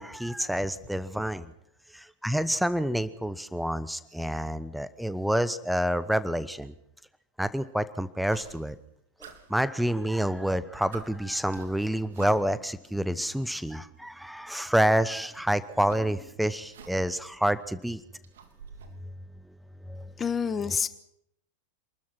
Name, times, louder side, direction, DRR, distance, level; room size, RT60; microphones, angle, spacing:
voice 1, 0.0-1.5 1.9-6.7 7.4-8.8 9.5-18.0 19.9-20.1, equal, ahead, 15 dB, 1.0 m, -28 dB
sound 1, 8.3-8.9 9.2-10.3 10.6-10.7 10.9-12.7 13.7-13.8 15.2-17.3 17.6-19.0, right 6 dB, 60° right, 3.6 m, -49 dB
voice 2, 20.2-20.9, left 6 dB, 20° left, 12 dB, 1.4 m, -27 dB
28.0 x 20.5 x 6.0 m, 0.79 s
figure-of-eight pair, 90°, 0 cm